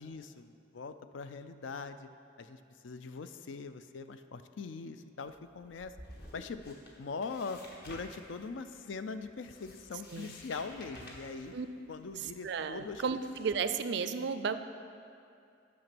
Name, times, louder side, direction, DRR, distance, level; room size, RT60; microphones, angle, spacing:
voice 1, 0.0-2.1 2.4-6.0 6.3-11.5 11.9-13.0, left 4 dB, 70° left, 10 dB, 0.4 m, -42 dB
sound 1, 5.2-13.6, left 1 dB, 55° left, 1.3 m, -53 dB
voice 2, 12.4-14.6, right 5 dB, 60° right, 11 dB, 0.4 m, -33 dB
9.5 x 6.0 x 6.0 m, 2.4 s
head